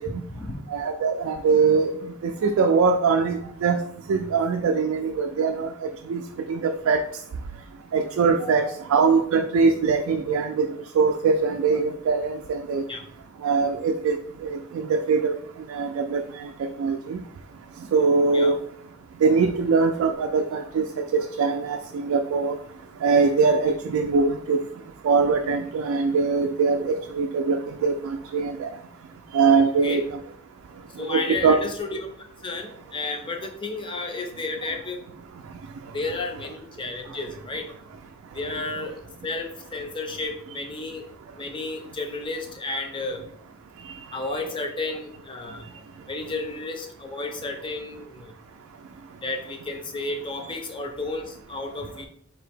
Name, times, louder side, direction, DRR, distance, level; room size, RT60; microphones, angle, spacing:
voice 1, 0.0-0.6 8.4-8.7 12.9-13.0 18.3-18.5 29.8-30.0 31.0-32.0 32.4-35.0 35.9-37.7 38.3-38.9 39.2-41.1 41.3-43.2 44.1-45.7 46.1-48.3 49.2-52.1, left 3 dB, 25° left, 3 dB, 0.5 m, -32 dB
voice 2, 0.7-2.0 2.2-3.8 4.1-6.2 6.5-7.0 7.9-10.7 10.9-12.8 13.4-15.3 15.7-17.2 17.9-18.6 19.2-22.6 23.0-24.6 25.0-28.7 29.3-30.2 31.0-31.6 43.8-44.0, right 4 dB, 75° right, 5 dB, 0.3 m, -22 dB
4.0 x 2.7 x 3.4 m, 0.68 s
head